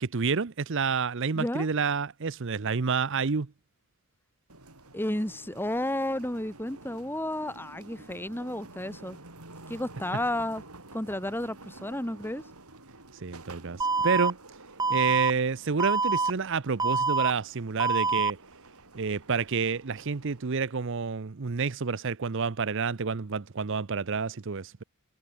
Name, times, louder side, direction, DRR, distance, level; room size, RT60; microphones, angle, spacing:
voice 1, 0.0-3.5 13.2-14.4 14.9-18.4 18.9-24.8, right 5 dB, 55° right, 0.7 m, -29 dB
voice 2, 1.4-1.7 4.9-9.2 9.7-10.6 10.9-12.4, left 1 dB, 10° left, 1.8 m, -32 dB
sound 1, 4.5-20.5, right 2 dB, 90° right, 6.3 m, -50 dB
Alarm, 13.8-14.3 14.8-15.3 15.8-16.3 16.8-17.3 17.8-18.3, right 4 dB, 15° right, 1.1 m, -25 dB
head